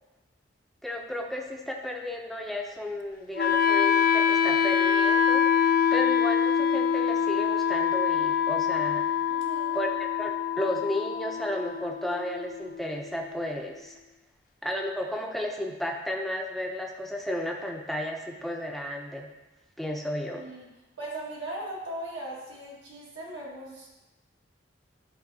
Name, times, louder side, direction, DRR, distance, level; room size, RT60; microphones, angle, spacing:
voice 1, 0.8-9.1 9.7-10.3 10.6-13.9 14.6-19.3 19.8-20.4, left 1 dB, ahead, 0 dB, 0.6 m, -33 dB
Wind instrument woodwind instrument, 3.4-13.4, left 7 dB, 45° left, 0.3 m, -25 dB
voice 2, 9.3-9.8 20.3-20.7 21.0-23.9, right 1 dB, 75° right, -5 dB, 1.8 m, -39 dB
11.5 x 4.0 x 2.7 m, 1.1 s
head